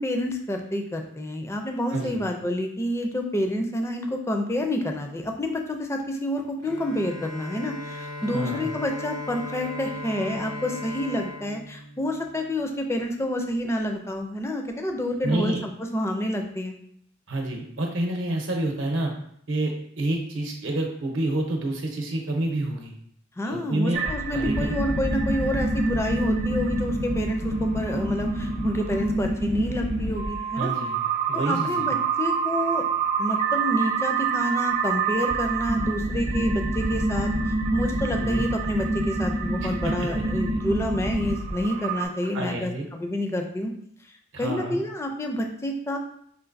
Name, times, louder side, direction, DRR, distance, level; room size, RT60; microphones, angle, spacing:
voice 1, 0.0-16.8 23.4-30.7 31.3-32.8 33.2-37.3 37.7-43.7 44.4-46.0, left 1 dB, 15° left, 4 dB, 0.4 m, -28 dB
Bowed string instrument, 6.6-12.6, left 2 dB, 80° left, 0.8 m, -37 dB
voice 2, 8.3-8.7 15.2-15.6 17.3-19.1 19.5-22.9 23.5-24.0 24.3-24.7 30.6-31.9 38.2-38.5 39.6-40.2 42.3-42.9 44.3-44.8, right 1 dB, 70° right, 2 dB, 0.8 m, -28 dB
sound 1, 23.9-42.1, right 3 dB, 35° right, 0.6 m, -26 dB
5.0 x 2.5 x 2.5 m, 0.67 s
head